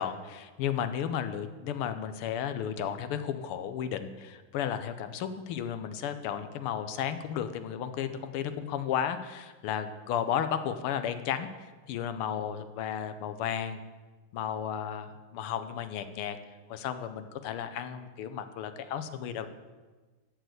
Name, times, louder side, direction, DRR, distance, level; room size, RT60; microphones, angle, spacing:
voice 1, 0.0-13.8 14.3-16.4 16.7-19.5, left 9 dB, 85° left, 10 dB, 1.6 m, -33 dB
13.5 x 4.7 x 7.9 m, 1.3 s
omnidirectional pair, 2.4 m